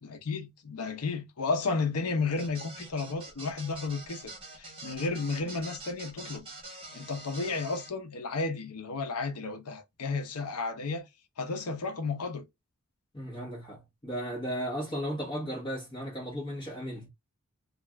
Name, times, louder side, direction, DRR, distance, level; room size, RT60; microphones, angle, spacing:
voice 1, 0.0-6.5 6.9-11.1 11.4-12.4, left 4 dB, 80° left, 0.7 m, -33 dB
sound 1, 2.4-7.9, right 2 dB, 25° right, 1.0 m, -45 dB
voice 2, 13.1-17.1, equal, 20° left, 1.0 m, -35 dB
2.5 x 2.4 x 3.2 m
head